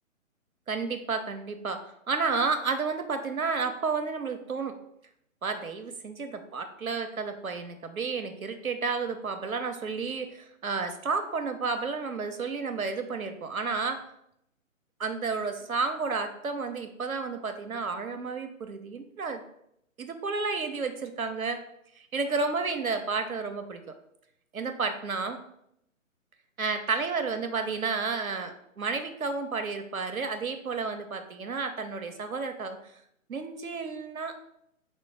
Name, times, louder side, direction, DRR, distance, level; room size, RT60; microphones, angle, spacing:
voice 1, 0.7-1.8 2.1-4.7 5.4-14.0 15.0-19.4 20.0-21.6 22.1-23.8 24.5-25.4 26.6-32.8 33.3-34.5, right 4 dB, 85° right, 7 dB, 0.7 m, -31 dB
4.4 x 2.0 x 3.8 m, 0.74 s
figure-of-eight pair, 135°, 41 cm